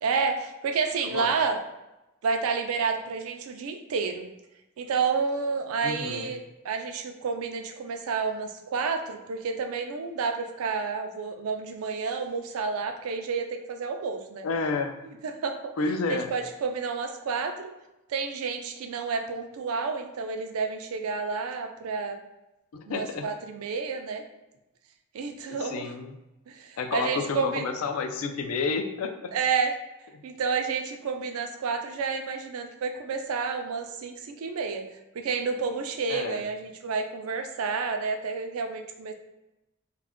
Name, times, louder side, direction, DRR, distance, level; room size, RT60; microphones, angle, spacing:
voice 1, 0.0-1.6 2.2-4.3 4.8-14.5 15.2-15.7 16.1-17.7 18.1-22.2 22.9-24.2 25.1-25.9 26.5-27.7 29.3-29.7 30.2-34.8 35.1-39.1, right 5 dB, 90° right, 5 dB, 0.4 m, -30 dB
voice 2, 1.0-1.5 5.8-6.3 14.4-15.0 15.8-16.3 22.7-23.3 25.5-26.2 26.8-29.3 30.1-30.2 36.1-36.4, left 4 dB, 75° left, 7 dB, 0.4 m, -30 dB
2.4 x 2.1 x 3.4 m, 0.96 s
head